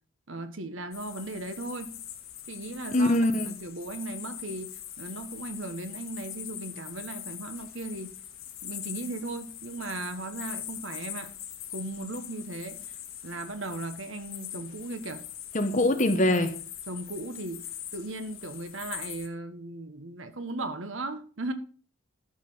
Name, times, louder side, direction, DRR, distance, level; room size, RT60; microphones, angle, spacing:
voice 1, 0.3-1.9 2.5-4.7 5.0-8.1 8.6-11.3 11.7-12.8 13.2-15.2 16.9-17.7 17.9-21.5, right 2 dB, 70° right, 1.2 m, -37 dB
sound 1, 0.9-19.3, left 11 dB, 85° left, 1.8 m, -42 dB
voice 2, 2.9-3.5 15.5-16.6, left 1 dB, 35° left, 1.2 m, -23 dB
12.5 x 4.9 x 5.7 m
head